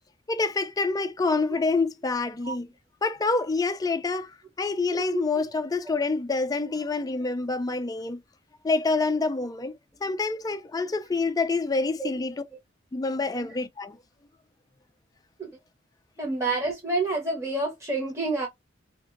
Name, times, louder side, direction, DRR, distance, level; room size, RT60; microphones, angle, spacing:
voice 1, 0.3-2.7 3.0-4.3 4.6-8.2 8.6-9.7 10.0-12.4 12.9-14.0, left 3 dB, 20° left, 0.4 m, -27 dB
voice 2, 16.2-18.5, right 3 dB, 15° right, 1.0 m, -28 dB
2.9 x 2.7 x 2.4 m
head